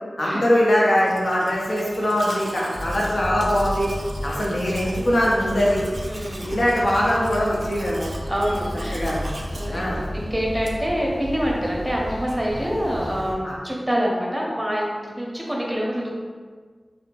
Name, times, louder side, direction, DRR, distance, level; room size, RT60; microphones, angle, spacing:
voice 1, 0.2-3.9 4.2-5.9 6.5-8.1 8.9-9.3 9.7-10.0 13.4-13.5, equal, 65° left, -5 dB, 0.7 m, -21 dB
Domestic sounds home sounds, 0.9-11.0, right 1 dB, 60° right, 0.3 m, -40 dB
sound 1, 2.7-13.3, equal, 15° left, 0.8 m, -33 dB
voice 2, 6.1-6.5 8.3-9.0 9.6-16.1, equal, 15° right, -3 dB, 0.7 m, -26 dB
2.7 x 2.1 x 3.0 m, 1.6 s
cardioid pair, 40°, 0 cm